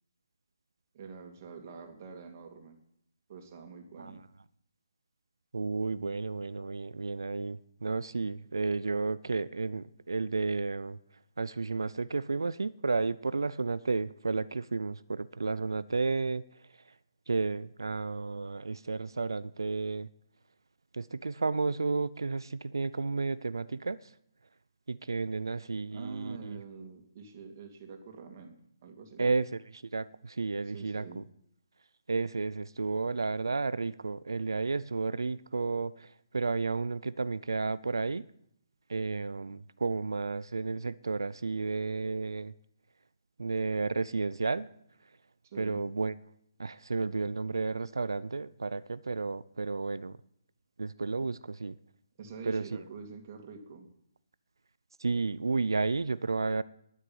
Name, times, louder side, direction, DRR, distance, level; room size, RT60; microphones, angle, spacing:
voice 1, 0.9-2.8 3.3-4.2 25.9-28.5 28.8-29.4 30.7-31.2 45.4-45.8 51.2-51.3 52.2-53.9, right 5 dB, 40° right, 2.6 m, -46 dB
voice 2, 5.5-11.0 11.4-16.4 16.9-17.0 17.3-20.1 20.9-24.1 24.9-26.6 29.2-31.2 32.1-38.2 38.9-42.5 43.4-44.7 45.6-46.1 46.6-50.2 50.8-51.7 52.5-52.8 55.0-56.6, right 4 dB, 85° right, 0.5 m, -32 dB
11.0 x 9.9 x 8.7 m
hypercardioid pair, 150°, 2 cm